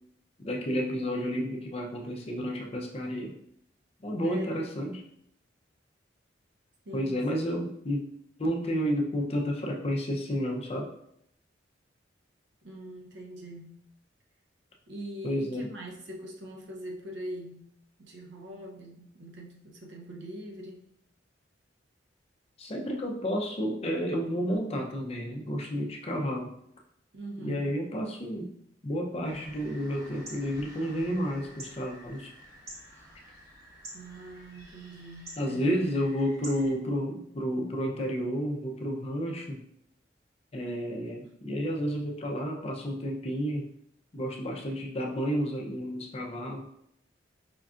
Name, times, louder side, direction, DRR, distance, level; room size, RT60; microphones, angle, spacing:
voice 1, 0.4-3.4 4.0-5.0 6.9-8.0 8.4-10.9 15.2-15.7 22.6-26.5 27.4-28.5 28.8-32.3 35.4-39.6 40.5-43.7 44.1-46.6, equal, 35° left, 1 dB, 0.5 m, -31 dB
voice 2, 4.2-4.7 6.9-7.6 12.6-13.8 14.9-17.7 18.0-20.8 27.1-27.7 33.9-36.0, right 1 dB, 80° right, 0 dB, 0.7 m, -43 dB
sound 1, 29.2-36.8, right 1 dB, 55° right, 1.2 m, -49 dB
5.1 x 2.3 x 2.4 m, 0.73 s
head